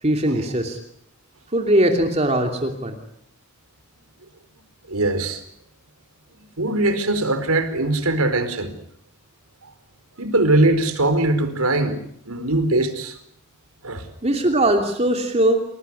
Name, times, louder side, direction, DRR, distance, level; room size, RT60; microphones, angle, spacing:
voice 1, 0.0-0.8 1.5-3.0 14.2-15.6, right 1 dB, 30° right, 3.0 m, -20 dB
voice 2, 4.9-5.4 6.6-8.7 10.2-12.0 12.3-13.2 13.8-14.1, right 2 dB, 90° right, 4.6 m, -21 dB
29.5 x 19.0 x 10.0 m
head